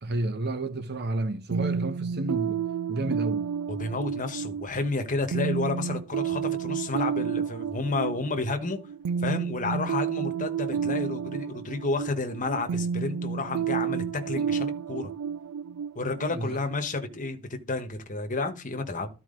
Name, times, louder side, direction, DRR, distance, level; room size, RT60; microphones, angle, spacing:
voice 1, 0.0-2.6 2.9-3.4 16.3-16.5, right 2 dB, 45° right, 1.1 m, -30 dB
sound 1, 1.5-17.1, right 7 dB, 80° right, 0.3 m, -31 dB
voice 2, 3.7-8.8 9.2-15.1 15.9-19.1, left 3 dB, 35° left, 1.2 m, -31 dB
13.0 x 4.7 x 3.8 m
head